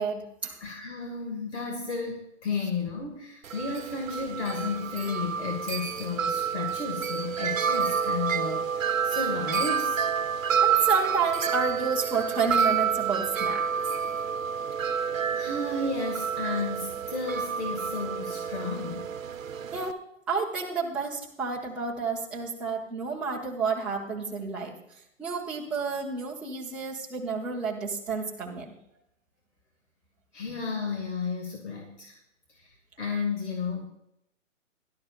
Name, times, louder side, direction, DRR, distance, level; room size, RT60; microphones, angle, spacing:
voice 1, 0.0-0.6 10.6-13.7 19.7-20.0 20.3-24.8 25.2-28.7, right 4 dB, 5° right, -5 dB, 0.7 m, -30 dB
voice 2, 0.6-10.0 14.7-19.1 30.3-32.2 32.6-32.7 33.0-33.9, left 4 dB, 60° left, 1 dB, 2.1 m, -33 dB
Wind chime, 3.4-19.9, right 7 dB, 80° right, 0.8 m, -29 dB
17.5 x 12.0 x 2.4 m, 0.77 s
hypercardioid pair, 155°, 39 cm